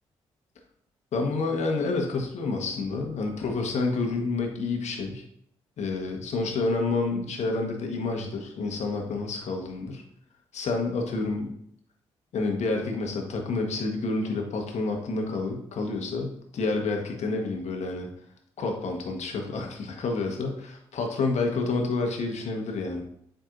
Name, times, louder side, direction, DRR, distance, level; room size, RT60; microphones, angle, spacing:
voice 1, 1.1-5.2 5.8-10.0 10.5-11.5 12.3-18.1 18.6-23.0, left 3 dB, 60° left, 2 dB, 1.4 m, -29 dB
7.4 x 5.2 x 2.6 m, 0.70 s
hypercardioid pair, 45°, 13 cm